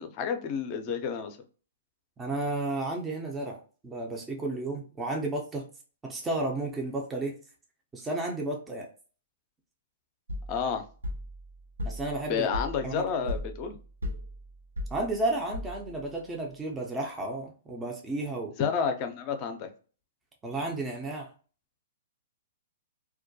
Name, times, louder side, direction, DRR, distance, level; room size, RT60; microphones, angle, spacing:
voice 1, 0.0-1.4 10.5-10.8 12.3-13.8 18.6-19.7, left 6 dB, 40° left, 7 dB, 0.5 m, -30 dB
voice 2, 2.2-5.7 6.0-7.4 7.9-8.9 11.8-12.5 12.8-13.3 14.9-18.5 20.4-21.3, right 2 dB, 15° right, 0 dB, 0.5 m, -32 dB
sound 1, 10.3-16.1, left 1 dB, 90° right, 0.7 m, -37 dB
2.3 x 2.1 x 2.6 m, 0.39 s
hypercardioid pair, 120°, 0 cm